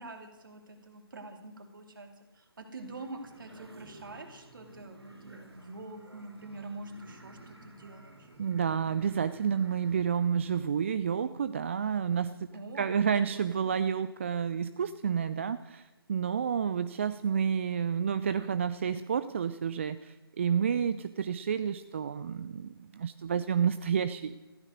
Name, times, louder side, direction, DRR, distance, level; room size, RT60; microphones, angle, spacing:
voice 1, 0.0-2.1 2.3-8.3 12.5-13.1 13.3-13.8, right 2 dB, 55° right, 4 dB, 2.8 m, -45 dB
sound 1, 2.8-10.0, right 2 dB, 80° right, 3.7 m, -54 dB
voice 2, 8.4-12.4 12.7-24.4, right 7 dB, 30° right, 13 dB, 0.4 m, -30 dB
14.5 x 13.0 x 6.5 m, 1.2 s
figure-of-eight pair, 145°, 13 cm